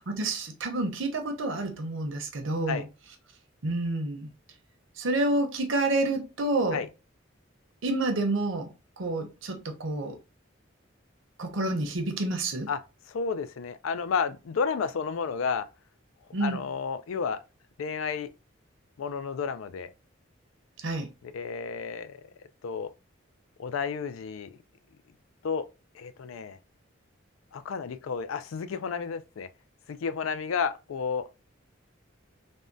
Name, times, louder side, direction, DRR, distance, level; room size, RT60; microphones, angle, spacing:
voice 1, 0.1-2.8 3.6-4.3 5.0-6.8 7.8-10.2 11.4-12.7 16.3-16.6 20.8-21.1, right 2 dB, 70° right, 0.7 m, -29 dB
voice 2, 13.1-15.6 16.4-17.4 17.8-18.3 19.0-19.9 21.2-22.2 22.6-22.9 23.6-24.5 25.4-25.7 25.9-26.6 27.5-29.5 29.9-31.2, left 5 dB, 85° left, 0.4 m, -31 dB
3.5 x 2.2 x 2.5 m
head